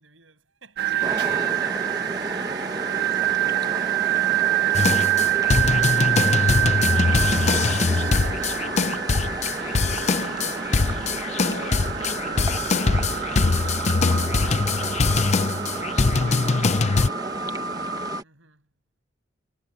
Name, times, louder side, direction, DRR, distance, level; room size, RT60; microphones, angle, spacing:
voice 1, 0.0-1.2 9.8-10.6 18.2-18.7, right 3 dB, 75° right, 7.7 m, -53 dB
sound 1, 0.8-18.2, right 11 dB, 55° right, 1.3 m, -27 dB
voice 2, 0.9-2.4 2.9-4.1 4.3-5.6 5.9-6.5 9.5-15.5 15.9-16.5, left 3 dB, 60° left, 3.9 m, -46 dB
sound 2, 1.0-18.2, right 2 dB, 20° right, 1.0 m, -34 dB
sound 3, 4.7-17.1, left 4 dB, 35° left, 0.5 m, -22 dB
head